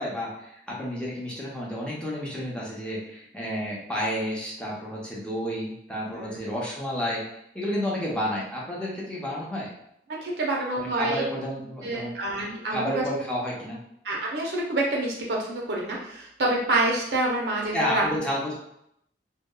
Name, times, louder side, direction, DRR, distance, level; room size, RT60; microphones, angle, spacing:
voice 1, 0.0-7.3 7.5-9.7 10.9-12.1 12.7-13.8 17.7-18.5, equal, 5° left, -5 dB, 0.5 m, -30 dB
voice 2, 10.1-11.3 11.8-13.1 14.0-18.1, right 2 dB, 65° right, -2 dB, 0.6 m, -27 dB
2.7 x 2.2 x 2.2 m, 0.76 s
head